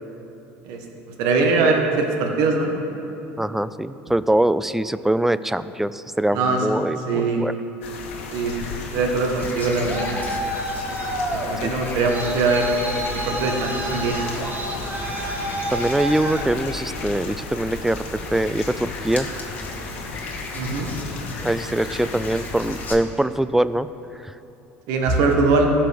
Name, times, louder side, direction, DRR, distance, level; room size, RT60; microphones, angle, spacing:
voice 1, 1.2-2.7 6.3-6.6 7.1-7.4 8.3-10.1 11.3-12.7 13.1-14.2 20.5-20.9 24.9-25.7, right 3 dB, 70° right, 2 dB, 1.3 m, -21 dB
voice 2, 3.4-7.5 11.6-11.7 15.7-19.3 21.4-23.9 24.2-24.3, right 1 dB, 5° right, 15 dB, 0.3 m, -23 dB
sound 1, 7.8-23.0, left 4 dB, 80° left, 1.2 m, -35 dB
Frog, 9.4-22.9, left 3 dB, 25° left, 1.5 m, -37 dB
Traffic noise roadway noise, 9.5-17.2, right 1 dB, 30° right, 1.7 m, -30 dB
15.5 x 6.0 x 3.5 m, 2.9 s
hypercardioid pair, 80°, 7 cm